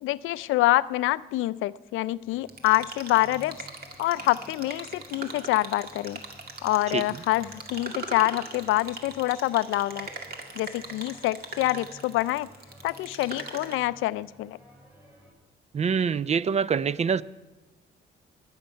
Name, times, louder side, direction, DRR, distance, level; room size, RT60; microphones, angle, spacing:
voice 1, 0.0-3.6 4.0-6.2 6.6-10.1 10.6-12.5 12.8-14.6, left 17 dB, 85° left, 0.4 m, -26 dB
sound 1, 2.2-15.3, equal, 5° right, 4.2 m, -53 dB
sound 2, 2.5-13.7, right 3 dB, 50° right, 1.9 m, -41 dB
voice 2, 15.7-17.2, right 6 dB, 35° right, 0.4 m, -25 dB
21.0 x 8.0 x 5.5 m
cardioid pair, 90°, 20 cm